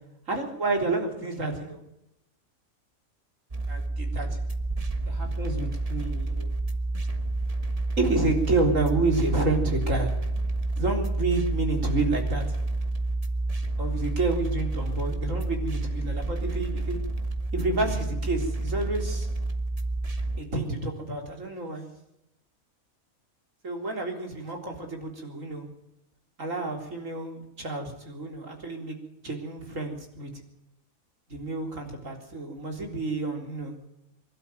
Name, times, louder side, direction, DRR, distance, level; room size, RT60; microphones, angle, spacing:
voice 1, 0.3-1.8 3.7-4.4 5.0-6.5 8.0-10.1 10.8-12.5 13.8-17.0 17.5-19.3 20.4-21.9 23.6-25.7 26.4-29.0 29.2-30.3 31.3-33.8, right 3 dB, 60° right, 3 dB, 4.2 m, -29 dB
sound 1, 3.5-20.4, right 2 dB, 25° right, 1.5 m, -29 dB
23.5 x 12.0 x 9.3 m, 0.85 s
omnidirectional pair, 1.5 m